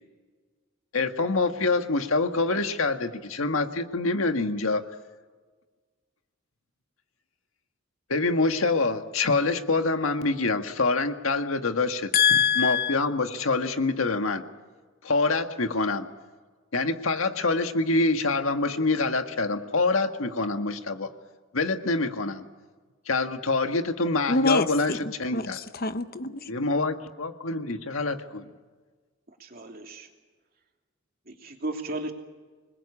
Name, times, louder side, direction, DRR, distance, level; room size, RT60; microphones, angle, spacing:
voice 1, 0.9-4.8 8.1-12.1 12.6-14.4 15.0-16.1 16.7-21.1 21.5-22.4 23.1-25.6 26.5-28.5, left 3 dB, 85° left, 7 dB, 1.6 m, -26 dB
voice 2, 12.1-13.0 24.3-25.0 25.3-26.5, left 6 dB, 45° left, 11 dB, 0.9 m, -24 dB
voice 3, 29.4-30.1 31.3-32.1, right 2 dB, 45° right, 3 dB, 2.9 m, -35 dB
26.0 x 21.0 x 8.5 m, 1.4 s
head